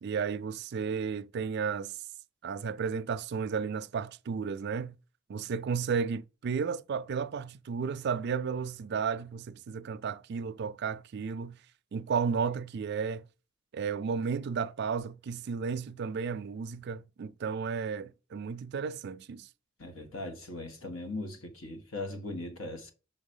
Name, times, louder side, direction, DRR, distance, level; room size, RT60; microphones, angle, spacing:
voice 1, 0.0-2.0 2.4-5.0 5.3-11.6 11.9-13.2 13.7-19.5, right 6 dB, 55° right, 0.4 m, -33 dB
voice 2, 19.8-22.9, left 2 dB, 80° left, 1.4 m, -39 dB
5.7 x 4.0 x 5.4 m
head